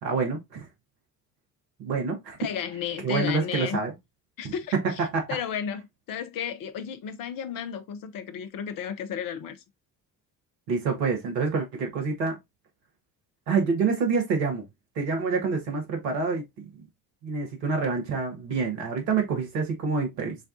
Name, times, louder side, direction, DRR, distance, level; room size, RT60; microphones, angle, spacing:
voice 1, 0.0-0.7 1.8-2.4 3.0-3.9 4.4-5.3 10.7-12.4 13.5-14.6 14.9-16.8 17.2-20.4, right 4 dB, 75° right, 1.3 m, -27 dB
voice 2, 2.4-3.8 4.4-4.7 5.3-5.8 6.1-9.6, left 8 dB, 45° left, 0.7 m, -33 dB
6.2 x 2.3 x 2.5 m
figure-of-eight pair, 50°, 50 cm